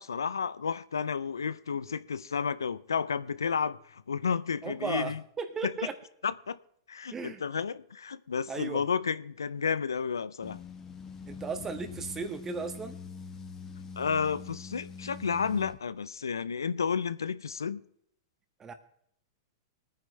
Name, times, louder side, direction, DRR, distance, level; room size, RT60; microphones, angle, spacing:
voice 1, 0.0-5.2 5.6-5.7 6.2-6.6 6.9-10.6 14.0-17.8, left 6 dB, 90° left, 0.5 m, -31 dB
voice 2, 4.6-6.0 7.1-7.4 8.5-8.9 11.3-13.0 18.6-18.7, right 5 dB, 20° right, 1.8 m, -36 dB
sound 1, 10.4-15.8, left 5 dB, 25° left, 1.5 m, -44 dB
24.0 x 9.7 x 3.3 m
hypercardioid pair, 110°, 2 cm